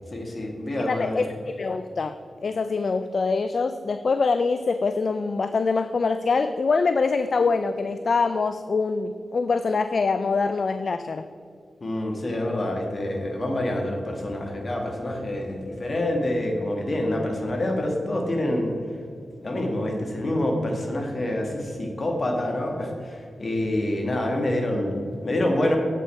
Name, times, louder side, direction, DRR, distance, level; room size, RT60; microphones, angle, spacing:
voice 1, 0.1-1.2 11.8-18.8 19.4-25.8, left 1 dB, 45° left, 2 dB, 1.7 m, -27 dB
voice 2, 0.8-11.3, left 4 dB, 60° left, 10 dB, 0.4 m, -24 dB
8.4 x 8.2 x 4.4 m, 2.4 s
cardioid pair, 75°, 0 cm